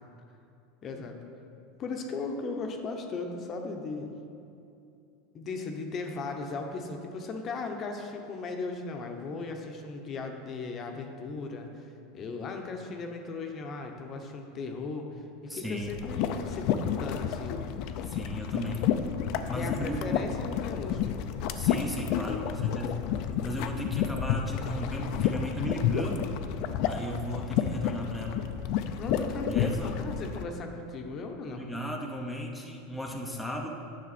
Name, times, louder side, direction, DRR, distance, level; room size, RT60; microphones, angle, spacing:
voice 1, 0.8-1.1 1.8-4.1 5.3-17.6 19.4-21.2 29.0-31.6, left 3 dB, 35° left, 4 dB, 0.8 m, -37 dB
voice 2, 15.5-15.9 18.0-18.9 19.5-20.3 21.6-23.0 23.4-26.4 26.8-28.5 29.5-30.0 31.6-33.7, equal, ahead, 0 dB, 0.7 m, -36 dB
sound 1, 15.8-30.4, left 8 dB, 55° left, 0.5 m, -30 dB
9.4 x 6.4 x 4.2 m, 2.7 s
supercardioid pair, 135°, 0 cm